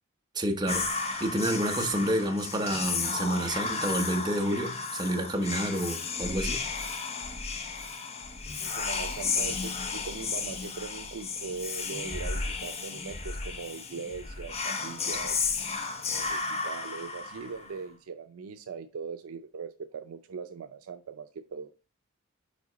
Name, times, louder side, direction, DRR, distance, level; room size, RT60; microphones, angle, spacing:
voice 1, 0.3-0.9 1.2-6.6, right 1 dB, 20° right, 0.9 m, -29 dB
Whispering, 0.7-17.8, left 4 dB, 30° left, 0.6 m, -33 dB
voice 2, 8.6-15.5 16.1-21.7, right 5 dB, 85° right, 0.4 m, -40 dB
5.1 x 4.8 x 3.9 m
head